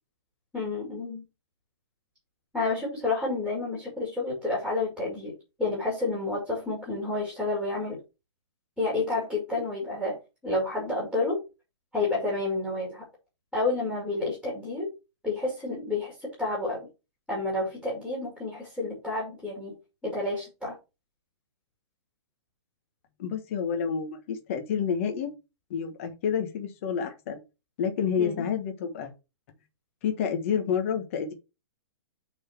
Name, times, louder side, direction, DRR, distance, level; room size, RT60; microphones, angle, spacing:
voice 1, 0.5-1.2 2.5-8.0 8.8-10.2 10.4-11.4 11.9-13.0 13.5-14.9 15.2-16.9 17.3-19.8 20.0-20.8 28.2-28.5, left 2 dB, ahead, 2.2 m, -30 dB
voice 2, 23.2-25.3 25.7-27.4 27.8-29.1 30.0-31.3, left 7 dB, 25° left, 1.2 m, -29 dB
6.4 x 4.0 x 5.9 m
hypercardioid pair, 175°, 15 cm